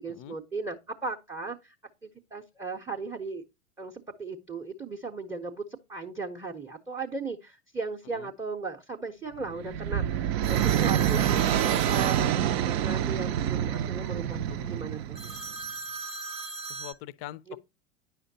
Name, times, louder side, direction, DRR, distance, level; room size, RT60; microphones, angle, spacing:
voice 1, 0.0-1.7 2.0-3.4 3.8-15.2 17.5-17.6, right 4 dB, 10° right, 0.7 m, -37 dB
sound 1, 9.4-15.5, right 10 dB, 50° right, 0.6 m, -27 dB
sound 2, 10.4-13.0 15.2-16.9, right 4 dB, 85° right, 0.9 m, -38 dB
voice 2, 14.5-14.8 16.7-17.6, left 14 dB, 35° left, 0.5 m, -43 dB
9.9 x 5.7 x 2.7 m
figure-of-eight pair, 85°, 39 cm